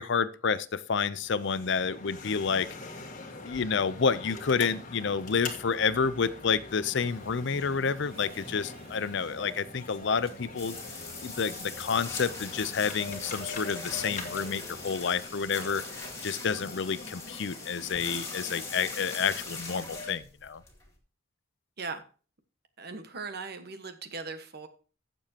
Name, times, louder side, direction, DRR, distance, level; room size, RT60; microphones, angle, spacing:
voice 1, 0.0-2.7 3.4-10.8 11.2-20.6, left 6 dB, 60° left, 16 dB, 0.5 m, -29 dB
sound 1, 1.2-20.1, left 3 dB, 40° left, 1.5 m, -44 dB
sound 2, 6.9-14.9, right 1 dB, 30° right, 1.8 m, -53 dB
sound 3, 10.6-21.0, left 3 dB, 15° left, 2.0 m, -41 dB
voice 2, 22.8-24.7, right 4 dB, 50° right, 8 dB, 1.3 m, -39 dB
15.5 x 7.0 x 2.9 m, 0.37 s
head